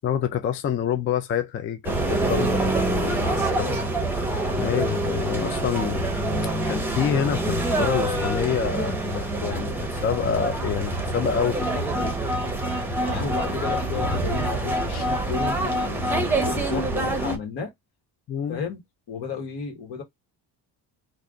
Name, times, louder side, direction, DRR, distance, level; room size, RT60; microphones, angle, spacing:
voice 1, 0.0-3.4 4.6-6.1 6.4-12.2 18.3-18.6, left 8 dB, 35° left, 0.4 m, -27 dB
sound 1, 1.8-17.4, right 1 dB, 5° right, 0.7 m, -26 dB
voice 2, 3.1-3.9 13.0-17.7 18.5-18.8 19.1-20.0, left 5 dB, 75° left, 1.7 m, -33 dB
3.3 x 2.5 x 3.7 m
cardioid pair, 165°, 40 cm